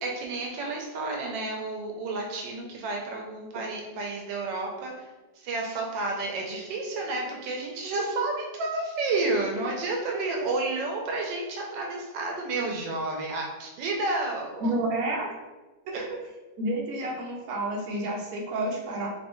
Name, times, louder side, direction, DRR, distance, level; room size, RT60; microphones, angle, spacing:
voice 1, 0.0-5.1 5.3-14.8 15.9-16.0, right 2 dB, 80° right, 0 dB, 1.3 m, -31 dB
voice 2, 14.6-15.3 16.1-16.2 16.6-19.1, right 1 dB, 60° right, -2 dB, 1.2 m, -30 dB
3.5 x 3.1 x 3.0 m, 1.2 s
omnidirectional pair, 1.9 m